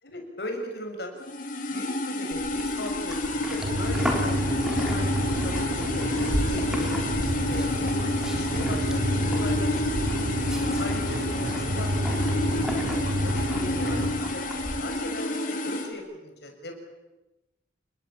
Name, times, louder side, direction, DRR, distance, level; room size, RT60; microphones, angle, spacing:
voice 1, 0.0-1.1 1.7-10.0 10.8-12.8 13.2-16.7, left 1 dB, 65° left, 3 dB, 6.9 m, -39 dB
sound 1, 1.2-15.9, left 1 dB, 50° left, 3.9 m, -29 dB
Livestock farm animals working animals, 2.3-14.8, equal, 5° right, 4.4 m, -36 dB
sound 2, 3.6-14.1, equal, 80° right, 4.0 m, -29 dB
29.5 x 20.5 x 8.8 m, 1.0 s
head